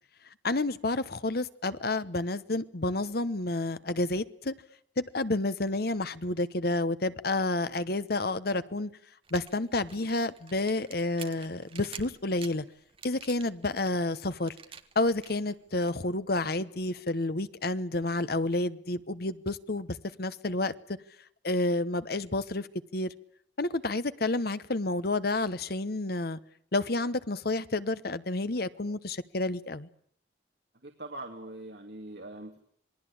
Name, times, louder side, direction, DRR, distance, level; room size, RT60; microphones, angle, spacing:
voice 1, 0.4-4.5 5.0-8.9 9.3-12.6 13.0-14.5 14.9-19.9 20.2-20.7 21.4-22.7 22.9-23.1 23.6-26.4 26.7-29.9, left 2 dB, 55° left, 1.0 m, -30 dB
sound 1, 9.2-16.0, right 6 dB, 30° right, 1.4 m, -48 dB
voice 2, 30.8-32.6, right 2 dB, 60° right, 2.6 m, -42 dB
27.0 x 21.0 x 8.7 m
head